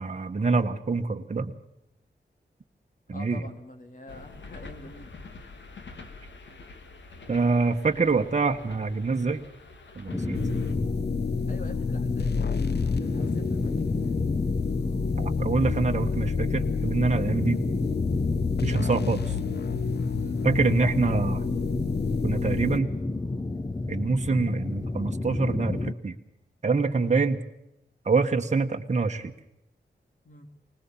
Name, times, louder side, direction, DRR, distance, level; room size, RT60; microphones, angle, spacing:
voice 1, 0.0-1.5 3.1-3.4 7.3-9.4 9.9-10.8 15.2-17.6 18.6-19.3 20.4-21.5 22.2-22.9 23.9-26.2 26.6-27.4 28.0-29.3, right 4 dB, 40° right, 4 dB, 1.3 m, -26 dB
voice 2, 3.1-5.1 11.5-14.2 20.1-20.4 30.2-30.5, left 2 dB, 45° left, 6 dB, 3.2 m, -46 dB
sound 1, 4.1-10.7, left 3 dB, 90° left, 2.2 m, -46 dB
sound 2, 10.1-25.9, left 2 dB, 20° left, 0.8 m, -31 dB
sound 3, 10.3-22.8, left 6 dB, 65° left, 0.8 m, -30 dB
21.0 x 20.0 x 7.2 m, 0.84 s
wide cardioid pair, 85°, 18 cm